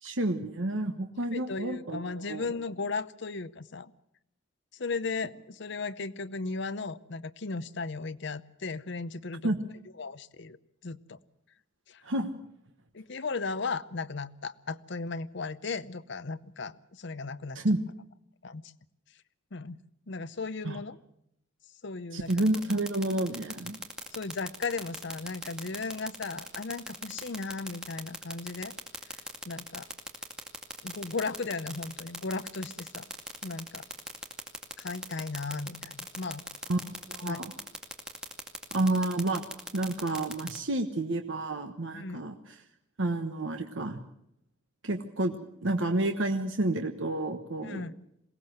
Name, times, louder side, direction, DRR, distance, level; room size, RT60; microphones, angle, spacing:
voice 1, 0.0-2.4 9.4-9.6 12.0-12.3 17.5-17.8 20.6-20.8 22.1-23.8 36.7-36.8 37.1-37.5 38.7-39.4 39.7-42.6 43.0-44.0 44.8-47.8, right 2 dB, 65° right, 5 dB, 1.2 m, -30 dB
voice 2, 1.3-3.9 4.7-9.5 10.0-10.6 10.8-11.2 11.9-12.0 12.9-17.6 18.4-18.7 19.5-19.8 20.1-21.0 21.8-22.4 24.2-28.7 29.5-29.9 30.8-33.1 33.4-33.8 34.8-36.4 37.2-37.4 41.9-42.2 47.6-48.0, left 4 dB, 60° left, 13 dB, 0.7 m, -36 dB
sound 1, 22.3-40.6, right 1 dB, 5° right, 2.3 m, -38 dB
22.0 x 17.0 x 7.9 m, 0.75 s
head